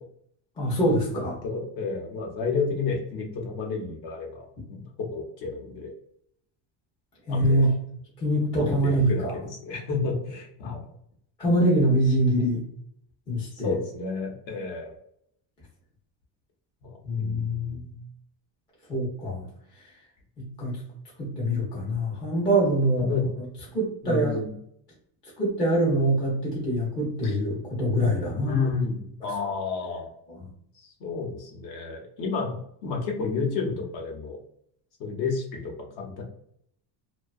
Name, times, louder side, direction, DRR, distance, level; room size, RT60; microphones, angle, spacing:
voice 1, 0.6-1.4 7.3-7.7 8.2-9.4 10.6-10.7 11.4-12.6 13.3-13.7 17.0-17.9 18.9-19.5 20.4-20.8 21.2-23.1 23.4-23.5 23.7-24.4 25.4-28.5, right 1 dB, 10° left, -6 dB, 0.3 m, -24 dB
voice 2, 1.1-5.9 7.3-7.8 8.5-10.9 13.6-15.0 16.8-17.8 23.0-23.3 24.0-24.5 27.2-27.4 28.4-30.1 30.7-34.4 35.0-36.2, left 4 dB, 50° left, 1 dB, 0.7 m, -31 dB
2.7 x 2.2 x 2.2 m, 0.69 s
cardioid pair, 175°, 49 cm